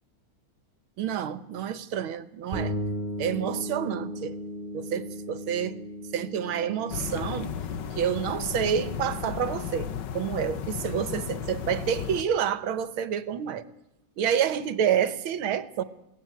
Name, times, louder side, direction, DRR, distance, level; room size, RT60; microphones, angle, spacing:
voice 1, 1.0-2.8 3.2-4.4 4.7-5.8 6.1-7.5 7.9-13.6 14.2-15.8, right 8 dB, 80° right, 1.9 m, -28 dB
sound 1, 2.5-12.1, equal, 20° right, 7.7 m, -38 dB
sound 2, 6.9-12.2, left 8 dB, 65° left, 1.6 m, -34 dB
22.5 x 17.0 x 9.4 m
omnidirectional pair, 2.2 m